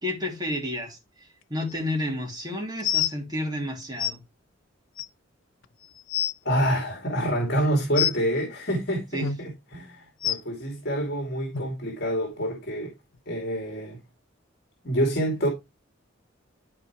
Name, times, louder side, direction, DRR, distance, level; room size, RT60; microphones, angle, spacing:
voice 1, 0.0-1.0 1.5-4.2 9.1-9.3, left 1 dB, 20° right, 2.9 m, -30 dB
sound 1, 1.7-1.8 2.8-3.1 4.0-4.1 5.0-5.1 5.6-5.7 6.0-6.3 8.0-8.2 9.2-9.4 10.2-10.4 11.5-11.6 12.4-12.5 13.2-13.3, left 9 dB, 85° left, 0.9 m, -26 dB
voice 2, 6.4-12.9 13.3-14.0 14.8-15.5, equal, 55° left, 2.9 m, -27 dB
13.0 x 4.8 x 3.1 m
head